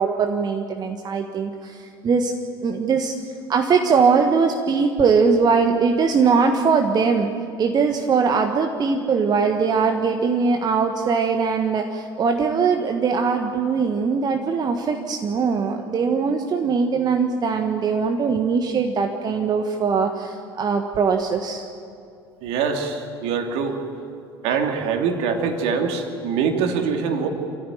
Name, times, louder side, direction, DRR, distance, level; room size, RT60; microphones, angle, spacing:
voice 1, 0.0-2.3 2.6-3.1 3.5-7.3 7.6-21.6, right 5 dB, 30° right, 4 dB, 1.5 m, -21 dB
voice 2, 22.4-23.8 24.4-27.3, right 6 dB, 55° right, 4 dB, 2.8 m, -24 dB
28.0 x 14.5 x 9.3 m, 2.5 s
figure-of-eight pair, 70°, 13 cm